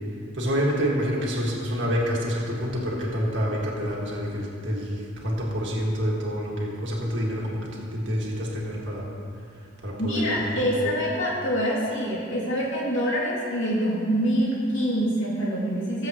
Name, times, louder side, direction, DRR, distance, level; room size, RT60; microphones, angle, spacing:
voice 1, 0.3-9.1 9.8-11.0, equal, 60° right, -3 dB, 1.9 m, -28 dB
voice 2, 10.0-16.1, equal, 70° left, -6 dB, 2.6 m, -25 dB
19.5 x 7.5 x 3.1 m, 2.5 s
head